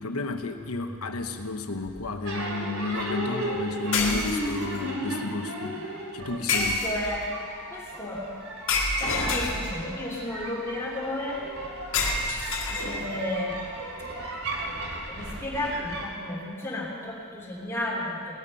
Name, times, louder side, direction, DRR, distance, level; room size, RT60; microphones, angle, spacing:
voice 1, 0.0-5.8 6.1-6.8, left 3 dB, 90° left, 7 dB, 1.1 m, -32 dB
sound 1, 1.9-2.1 3.9-4.8 6.5-7.2 8.7-10.0 11.9-13.3, left 3 dB, 65° left, 1.9 m, -28 dB
sound 2, 2.2-16.1, right 1 dB, 75° right, 2.9 m, -35 dB
voice 2, 6.5-7.4 7.7-8.2 9.0-11.4 12.7-13.6 14.0-14.3 15.1-18.3, left 1 dB, 15° left, -5 dB, 3.4 m, -33 dB
18.5 x 12.5 x 5.6 m, 2.4 s
head